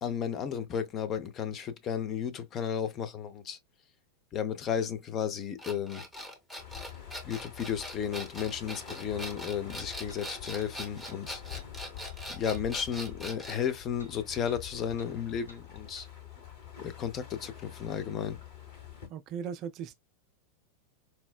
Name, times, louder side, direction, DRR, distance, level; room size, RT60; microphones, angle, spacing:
voice 1, 0.0-3.6 4.3-6.0 7.2-11.4 12.3-16.1 16.8-18.4, left 8 dB, 30° left, 0.6 m, -33 dB
sound 1, 5.6-13.7, equal, 5° left, 0.9 m, -42 dB
sound 2, 6.6-19.1, left 9 dB, 50° left, 1.3 m, -47 dB
sound 3, 8.5-8.6 10.1-10.2 10.6-10.7 11.0-11.2 11.5-11.7 12.0-12.2 12.5-12.6 13.0-13.2 13.5-13.7 14.0-14.1 14.5-14.6 15.0-15.1 15.5-15.6 16.0-16.1, equal, 80° left, 0.7 m, -54 dB
voice 2, 19.1-19.9, right 7 dB, 40° right, 0.3 m, -37 dB
4.2 x 2.0 x 2.3 m
figure-of-eight pair, 90°, 0 cm